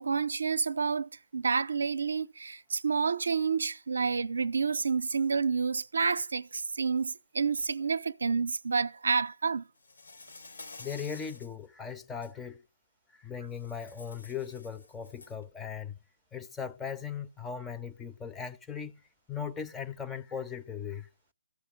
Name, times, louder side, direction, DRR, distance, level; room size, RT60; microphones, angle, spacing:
voice 1, 0.0-9.6, right 5 dB, 75° right, 0.5 m, -29 dB
Insect, 9.8-11.5 12.0-12.3 13.5-15.4, left 3 dB, 80° left, 1.7 m, -50 dB
voice 2, 10.8-12.6 13.1-16.0 16.3-18.9 19.3-21.1, left 7 dB, 10° left, 0.5 m, -38 dB
14.0 x 5.5 x 7.9 m
figure-of-eight pair, 145°, 0 cm